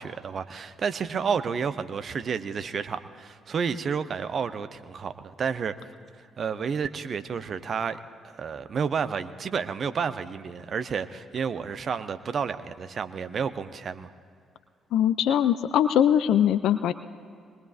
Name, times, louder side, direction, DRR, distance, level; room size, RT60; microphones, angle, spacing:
voice 1, 0.0-5.7 6.4-8.0 8.2-14.1, right 6 dB, 45° right, 10 dB, 0.6 m, -30 dB
voice 2, 14.9-16.9, left 10 dB, 60° left, 13 dB, 0.3 m, -21 dB
23.5 x 20.0 x 2.5 m, 2.2 s
figure-of-eight pair, 40°, 0 cm